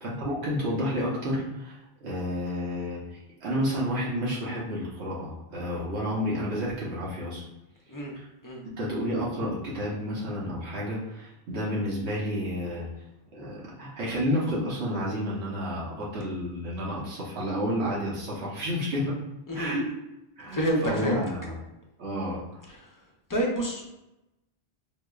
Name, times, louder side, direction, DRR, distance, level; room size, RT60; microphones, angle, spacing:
voice 1, 0.0-7.4 8.1-8.3 8.8-12.9 13.3-19.2 19.5-19.9 20.4-21.6 22.0-22.6, equal, 90° right, -6 dB, 1.0 m, -30 dB
voice 2, 20.5-21.2 22.7-23.0 23.3-23.9, right 1 dB, 30° left, -2 dB, 0.4 m, -28 dB
4.7 x 2.0 x 2.3 m, 0.93 s
omnidirectional pair, 1.1 m